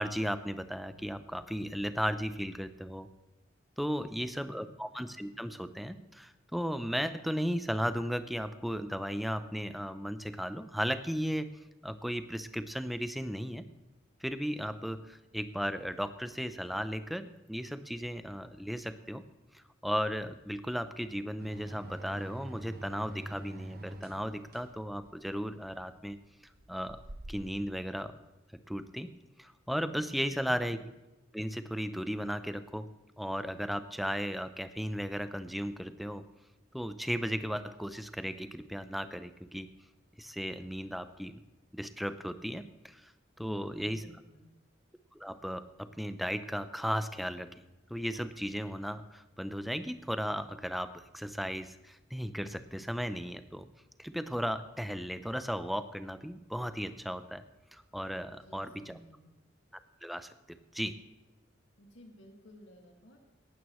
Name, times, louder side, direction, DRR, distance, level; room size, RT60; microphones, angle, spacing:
voice 1, 0.0-3.1 3.8-11.5 11.8-13.6 14.2-19.2 19.5-26.2 26.7-27.0 27.3-28.2 28.7-29.1 29.4-30.9 31.3-32.9 33.2-36.2 36.7-39.7 40.2-41.4 41.7-43.1 43.4-44.0 45.1-47.5 47.9-53.7 54.0-57.5 57.7-59.0 60.0-61.0, equal, ahead, 11 dB, 0.5 m, -35 dB
voice 2, 3.8-4.1 43.4-44.5 58.3-59.3 61.8-63.2, equal, 90° left, 1 dB, 2.0 m, -55 dB
sound 1, 21.4-27.7, right 1 dB, 50° right, 1.0 m, -46 dB
17.5 x 12.5 x 3.1 m, 1.0 s
head